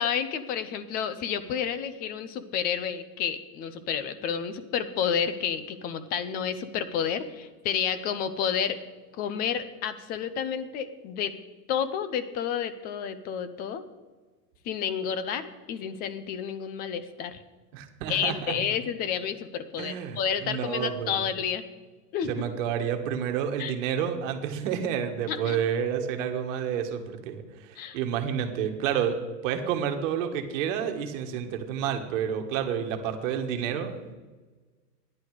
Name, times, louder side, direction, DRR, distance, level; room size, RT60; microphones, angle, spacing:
voice 1, 0.0-8.8 9.1-11.3 11.7-13.8 14.6-17.4 18.1-21.6 22.1-22.5 23.6-23.7 25.3-25.6 27.8-28.0, left 8 dB, 20° left, 12 dB, 0.5 m, -30 dB
voice 2, 17.7-18.6 19.8-21.1 22.3-29.2 29.4-34.1, right 8 dB, 55° right, 6 dB, 1.6 m, -30 dB
13.0 x 10.5 x 4.9 m, 1.3 s
supercardioid pair, 140°, 46 cm